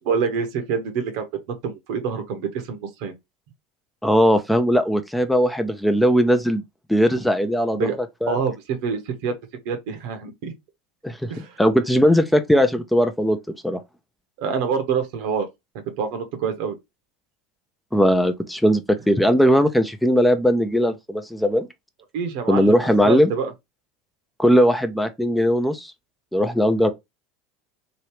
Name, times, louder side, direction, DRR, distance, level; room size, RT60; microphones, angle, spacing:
voice 1, 0.0-3.1 7.7-8.0 8.3-9.3 9.6-10.5 11.3-11.6 14.4-15.5 16.0-16.8 22.1-22.8 23.0-23.5, right 6 dB, 65° right, 0.9 m, -26 dB
voice 2, 4.0-6.6 6.9-7.9 8.2-8.4 11.0-11.3 11.6-13.4 13.6-13.8 17.9-21.7 22.5-23.3 24.4-25.9 26.3-26.9, equal, 5° left, 0.5 m, -19 dB
3.0 x 2.8 x 3.1 m
hypercardioid pair, 90°, 0 cm